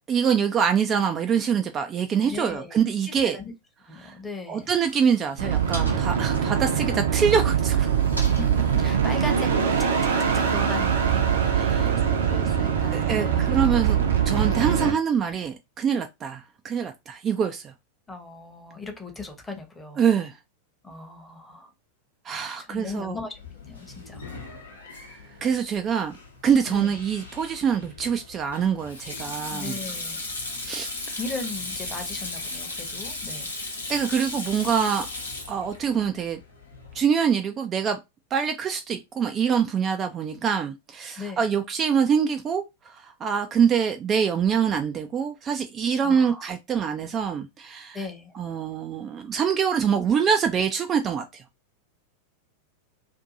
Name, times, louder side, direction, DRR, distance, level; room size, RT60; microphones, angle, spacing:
voice 1, 0.1-3.4 4.0-4.1 4.5-7.9 11.5-11.9 12.9-17.7 20.0-20.4 22.2-23.2 25.1-26.2 26.4-29.8 30.7-30.9 33.9-35.1 35.5-36.4 36.9-38.0 38.3-48.0 48.4-51.4, right 7 dB, 25° right, 0.3 m, -25 dB
voice 2, 2.2-2.8 3.1-3.5 3.9-4.7 8.1-13.6 18.1-20.0 20.8-21.7 22.6-24.7 26.7-27.0 29.5-30.2 31.2-33.5 41.2-41.4 46.0-46.5 47.9-48.3, left 3 dB, 10° left, 0.8 m, -38 dB
sound 1, 4.5-11.5, right 2 dB, 90° right, 0.9 m, -41 dB
sound 2, 5.4-14.9, right 8 dB, 65° right, 0.7 m, -23 dB
Sink (filling or washing), 23.3-37.0, left 2 dB, 75° left, 0.8 m, -37 dB
2.6 x 2.5 x 2.5 m
figure-of-eight pair, 90°, 0 cm